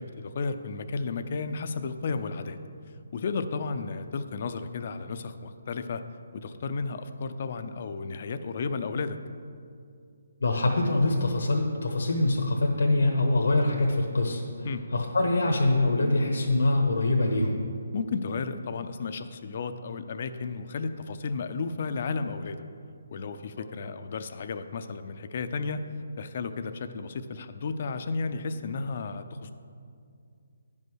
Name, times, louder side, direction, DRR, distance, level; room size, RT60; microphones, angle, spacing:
voice 1, 0.0-2.6 3.1-6.0 6.3-9.2 14.6-14.8 17.9-22.6 23.1-25.9 26.2-29.5, left 4 dB, 40° left, 10 dB, 0.5 m, -33 dB
voice 2, 10.4-14.4 14.9-17.5, left 2 dB, 80° left, 1 dB, 1.1 m, -24 dB
10.5 x 5.3 x 6.2 m, 2.4 s
hypercardioid pair, 170°, 0 cm